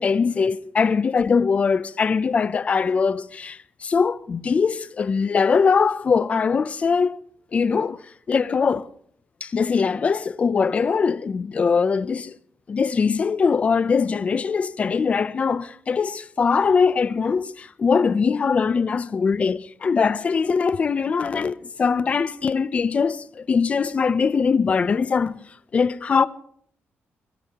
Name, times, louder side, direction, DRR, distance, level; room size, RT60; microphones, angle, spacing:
voice 1, 0.0-7.2 7.5-8.0 8.3-8.9 9.4-12.4 12.7-25.4 25.7-26.3, left 5 dB, 30° left, 0.6 m, -21 dB
23.0 x 16.5 x 3.0 m
wide cardioid pair, 175°, 4 cm